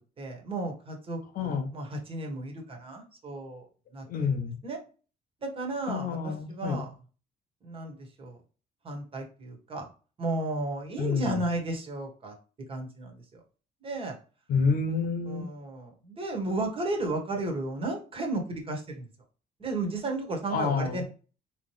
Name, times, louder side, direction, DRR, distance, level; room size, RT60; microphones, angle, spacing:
voice 1, 0.2-3.7 3.9-4.0 4.6-4.8 5.4-6.9 7.6-8.4 8.8-9.9 10.2-12.3 12.7-13.4 13.8-14.2 14.9-15.0 15.3-19.1 19.6-21.0, right 2 dB, 35° right, 1.5 m, -34 dB
voice 2, 1.3-1.7 4.1-4.6 5.9-6.8 11.0-11.4 14.5-15.5 20.5-21.0, left 5 dB, 60° left, 0.7 m, -28 dB
3.9 x 3.1 x 3.2 m
cardioid pair, 110°, 17 cm